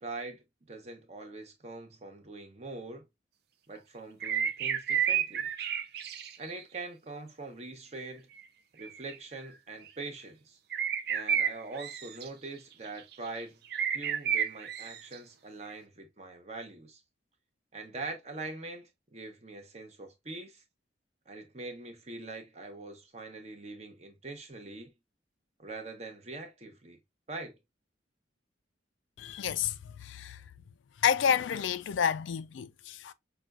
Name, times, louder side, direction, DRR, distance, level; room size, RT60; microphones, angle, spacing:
voice 1, 0.0-3.0 3.7-5.5 6.4-8.3 8.7-10.6 11.1-13.6 13.9-17.0 17.7-20.6 21.3-24.9 25.6-27.0 27.3-27.6, right 3 dB, 35° right, 0.8 m, -43 dB
sound 1, 4.2-6.5 6.8-6.9 8.8-9.1 9.9-10.0 10.7-12.3 13.0-13.3 13.7-15.1 15.7-15.8, right 8 dB, 55° right, 0.5 m, -31 dB
voice 2, 29.2-29.7 30.0-30.4 31.0-33.1, left 8 dB, 75° left, 0.3 m, -29 dB
5.8 x 2.3 x 2.3 m
head